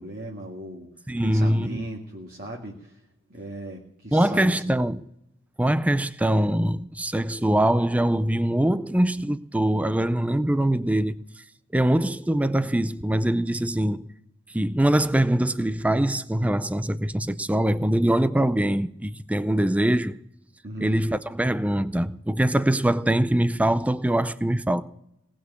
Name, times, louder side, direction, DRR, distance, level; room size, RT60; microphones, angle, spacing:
voice 1, 0.0-0.9 1.2-3.0 3.3-4.6 20.6-20.9, right 1 dB, 45° right, 2.0 m, -37 dB
voice 2, 1.1-1.8 4.1-5.0 5.6-11.2 11.7-14.1 14.5-20.2 20.8-24.8, right 1 dB, 5° right, 0.4 m, -23 dB
19.0 x 6.3 x 9.5 m
head